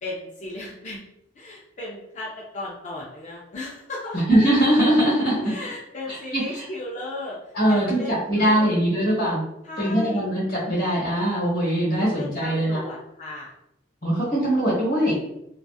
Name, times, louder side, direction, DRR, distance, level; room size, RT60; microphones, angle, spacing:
voice 1, 0.0-1.0 1.4-4.2 5.4-7.4 7.7-8.8 9.6-10.2 12.0-13.5, left 2 dB, 40° left, -4 dB, 0.4 m, -35 dB
voice 2, 4.1-5.5 6.1-6.7 7.5-9.4 9.8-12.8 14.0-15.2, right 1 dB, 55° left, -7 dB, 1.0 m, -21 dB
2.6 x 2.3 x 2.3 m, 0.81 s
head